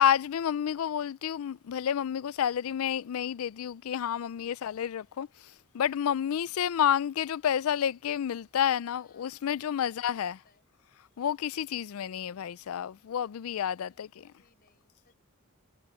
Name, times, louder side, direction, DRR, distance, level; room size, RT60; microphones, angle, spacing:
voice 1, 0.0-10.4 11.2-14.1, left 9 dB, 80° left, 0.4 m, -30 dB
voice 2, 8.9-9.5 9.9-10.7 13.8-15.2, left 4 dB, 45° left, 7.0 m, -67 dB
head